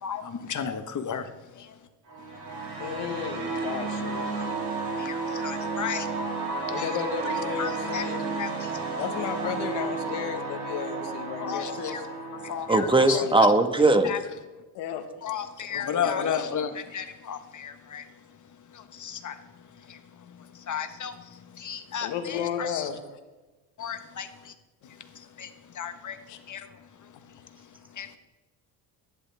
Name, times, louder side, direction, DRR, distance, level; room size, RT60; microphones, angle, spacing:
voice 1, 0.0-1.3 1.5-1.7 4.4-4.5 5.0-6.1 6.8-6.9 7.6-8.0 8.4-8.7 9.0-9.1 11.4-12.1 12.4-13.2 14.0-14.2 15.2-18.0 18.7-19.3 19.9-20.0 20.5-21.1 21.5-22.9 23.8-24.5 25.1-25.5 25.7-26.2 26.5-26.6 28.0-28.2, left 7 dB, 45° left, 8 dB, 1.5 m, -33 dB
sound 1, 2.1-13.1, right 3 dB, 60° right, 5.6 m, -32 dB
voice 2, 2.8-4.6 6.7-8.3 9.0-12.0 12.8-13.4 14.7-15.0 15.7-16.4 22.0-23.0 26.3-26.4 27.1-27.2, left 8 dB, 85° left, 7 dB, 1.7 m, -34 dB
voice 3, 12.7-14.1, right 2 dB, 10° right, 7 dB, 1.5 m, -19 dB
25.0 x 11.0 x 3.6 m, 1.2 s
supercardioid pair, 80°, 41 cm